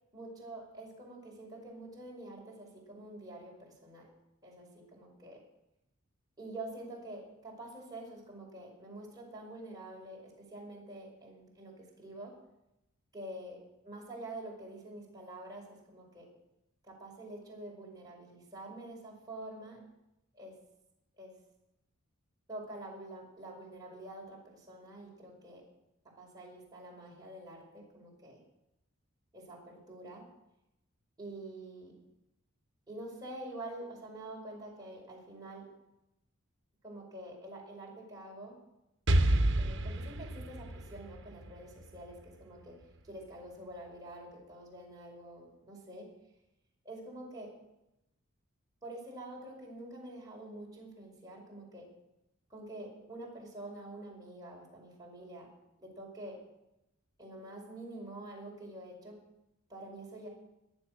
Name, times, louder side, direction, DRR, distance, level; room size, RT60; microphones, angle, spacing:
voice 1, 0.1-4.1 4.4-5.4 6.4-12.4 13.1-16.3 16.8-19.8 20.3-20.6 21.2-21.4 22.5-25.6 26.2-28.4 29.3-30.3 31.2-32.0 32.9-35.7 36.8-38.6 39.6-42.8 43.0-46.1 46.8-47.5 48.8-51.9 52.5-55.5 55.8-56.4 57.2-59.2 59.7-60.3, right 1 dB, 20° right, -3 dB, 5.4 m, -47 dB
Explosion, 39.1-42.8, right 1 dB, 60° right, 1.0 m, -30 dB
22.0 x 7.5 x 6.4 m, 0.89 s
head